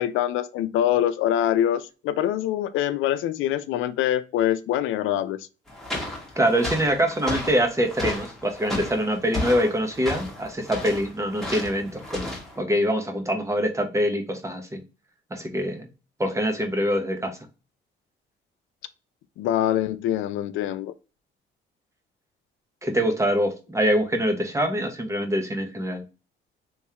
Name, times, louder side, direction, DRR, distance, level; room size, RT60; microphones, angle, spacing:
voice 1, 0.0-5.4 19.4-20.9, left 11 dB, 90° left, 0.4 m, -24 dB
sound 1, 5.7-12.6, left 1 dB, ahead, 1.5 m, -34 dB
voice 2, 6.4-14.8 15.3-15.9 16.2-17.4 22.8-26.0, equal, 15° right, 0.9 m, -24 dB
3.5 x 3.1 x 2.8 m
cardioid pair, 90°, 20 cm